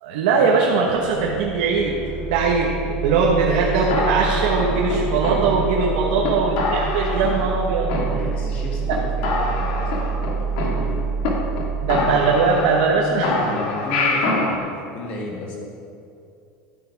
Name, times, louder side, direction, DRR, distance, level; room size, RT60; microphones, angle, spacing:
voice 1, 0.0-2.0 2.3-7.9 8.9-9.0 11.8-13.5, right 4 dB, 70° right, -2 dB, 1.3 m, -20 dB
sound 1, 0.8-13.5, right 6 dB, 30° right, 2.5 m, -28 dB
voice 2, 3.6-4.0 5.8-6.4 8.1-11.1 13.5-15.6, left 1 dB, 35° left, -1 dB, 2.1 m, -34 dB
sound 2, 3.9-5.8 6.2-6.3 6.6-7.6 7.9-8.6 8.9-9.0 9.2-11.3 11.6-11.7 11.9-12.9 13.2-14.6, left 2 dB, 55° left, 1.8 m, -25 dB
12.5 x 9.3 x 4.7 m, 2.6 s
cardioid pair, 180°, 4 cm